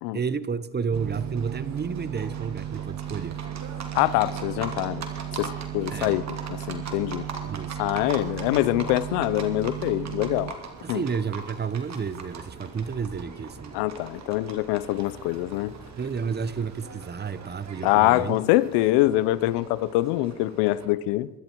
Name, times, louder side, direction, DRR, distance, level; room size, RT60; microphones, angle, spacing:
voice 1, 0.1-3.4 5.9-6.2 7.4-7.8 10.8-13.8 16.0-18.4, right 6 dB, 25° right, 0.9 m, -31 dB
Livestock farm animals working animals, 0.9-20.8, right 4 dB, 45° right, 2.7 m, -41 dB
sound 1, 0.9-10.5, right 11 dB, 65° right, 0.9 m, -35 dB
voice 2, 3.9-5.1 5.4-7.3 7.8-10.5 10.9-11.0 13.7-15.7 17.8-21.3, left 17 dB, 90° left, 0.7 m, -24 dB
23.5 x 13.0 x 4.6 m
supercardioid pair, 90°, 39 cm